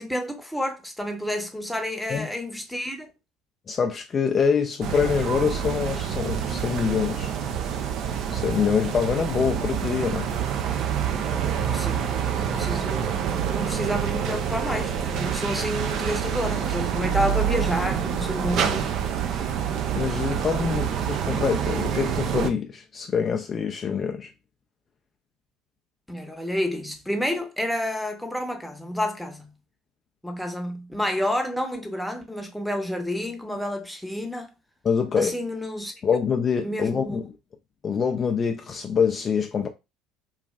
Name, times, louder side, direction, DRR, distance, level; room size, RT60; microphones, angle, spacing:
voice 1, 0.0-3.1 11.7-13.2 13.5-18.9 19.3-19.4 20.6-20.8 26.1-29.5 30.2-34.5 35.2-35.9 36.6-37.2, left 1 dB, ahead, 0.8 m, -30 dB
voice 2, 3.7-7.3 8.3-10.3 20.0-24.3 34.8-35.3 36.0-37.3 37.8-39.7, left 6 dB, 40° left, 0.4 m, -25 dB
sound 1, 4.8-22.5, right 8 dB, 55° right, 0.4 m, -27 dB
3.1 x 2.4 x 2.3 m
hypercardioid pair, 65°, 0 cm